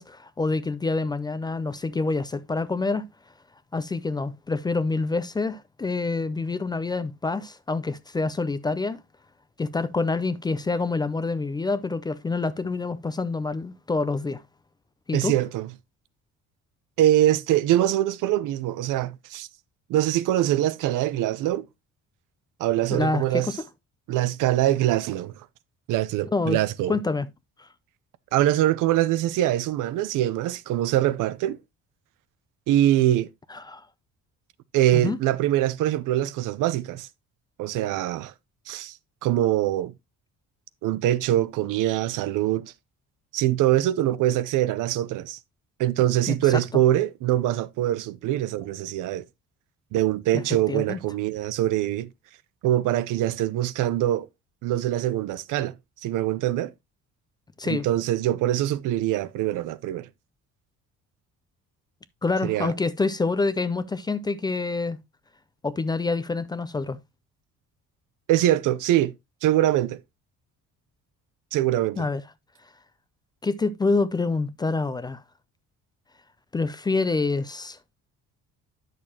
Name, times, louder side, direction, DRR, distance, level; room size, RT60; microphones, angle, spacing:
voice 1, 0.0-3.1 3.7-9.0 9.6-14.4 15.1-15.3 22.9-23.6 26.3-26.6 26.9-27.3 27.6-27.7 33.5-33.9 34.9-35.2 46.3-46.6 50.3-51.0 57.6-57.9 62.2-65.0 65.6-67.0 72.0-72.2 73.4-75.2 76.5-77.8, left 3 dB, 15° left, 0.4 m, -27 dB
voice 2, 15.1-15.7 17.0-19.5 19.9-21.7 22.6-23.5 24.1-25.3 25.9-26.9 28.3-31.6 32.7-33.3 34.7-37.1 37.6-38.3 38.7-39.0 39.2-39.9 40.8-42.7 43.3-45.4 45.8-49.2 49.9-52.1 52.6-54.3 54.6-55.7 56.0-56.7 57.6-60.1 62.4-62.7 68.3-69.1 69.4-70.0 71.5-72.1, right 13 dB, 85° right, 0.7 m, -23 dB
10.5 x 6.6 x 2.9 m
cardioid pair, 175°, 30 cm